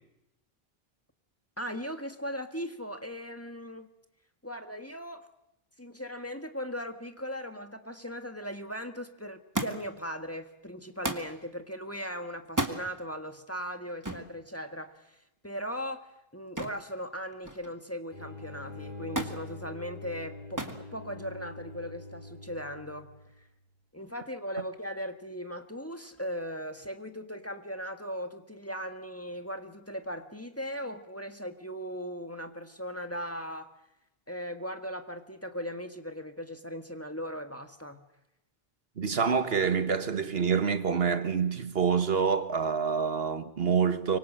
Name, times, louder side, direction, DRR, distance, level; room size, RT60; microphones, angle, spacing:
voice 1, 1.6-3.9 4.4-5.3 5.8-23.1 23.9-33.7 34.3-38.0, equal, 15° left, 1.6 m, -38 dB
Thump thud, 9.5-10.0 11.0-11.3 12.4-12.8 14.0-14.3 16.6-16.9 17.2-17.8 19.2-19.4 20.6-20.8 21.8-22.3 23.2-23.3, right 1 dB, 20° right, 1.8 m, -33 dB
sound 1, 18.1-23.5, left 2 dB, 55° left, 3.9 m, -44 dB
voice 2, 39.0-44.2, right 6 dB, 75° right, 1.5 m, -27 dB
24.5 x 24.5 x 7.6 m
omnidirectional pair, 1.0 m